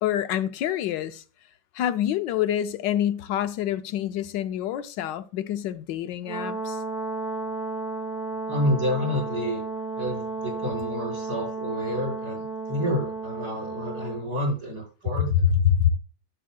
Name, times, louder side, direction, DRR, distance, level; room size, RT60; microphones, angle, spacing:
voice 1, 0.0-1.2 1.7-6.8 15.3-15.9, left 10 dB, 75° left, 1.2 m, -26 dB
Brass instrument, 6.2-14.2, right 3 dB, 70° right, 2.6 m, -33 dB
voice 2, 8.5-9.6 10.0-15.3, equal, 55° right, 5.9 m, -29 dB
11.0 x 7.9 x 2.3 m
omnidirectional pair, 2.0 m